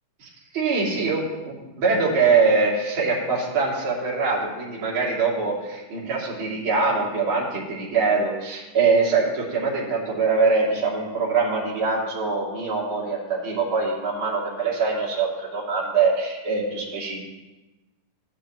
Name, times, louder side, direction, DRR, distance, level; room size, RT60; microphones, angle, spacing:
voice 1, 0.5-17.2, right 4 dB, 40° right, -6 dB, 3.4 m, -23 dB
17.0 x 11.5 x 3.0 m, 1.1 s
omnidirectional pair, 3.8 m